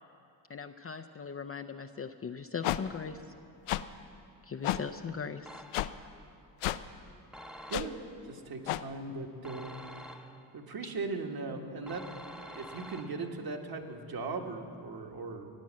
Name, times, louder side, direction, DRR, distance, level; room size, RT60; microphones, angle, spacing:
voice 1, 0.5-3.2 4.5-5.5, left 6 dB, 30° left, 6 dB, 0.5 m, -39 dB
sound 1, 2.6-2.8 3.7-3.8 4.6-4.8 5.7-5.9 6.6-6.8 7.7-7.9 8.7-8.8, left 14 dB, 80° left, 0.6 m, -30 dB
sound 2, 5.5-6.1 7.3-8.2 9.4-10.6 11.9-13.5, equal, ahead, 0.8 m, -48 dB
voice 2, 8.2-9.8 10.5-12.1 12.4-15.5, right 3 dB, 45° right, 2 dB, 1.6 m, -38 dB
15.0 x 9.4 x 7.4 m, 2.6 s
cardioid pair, 70°, 49 cm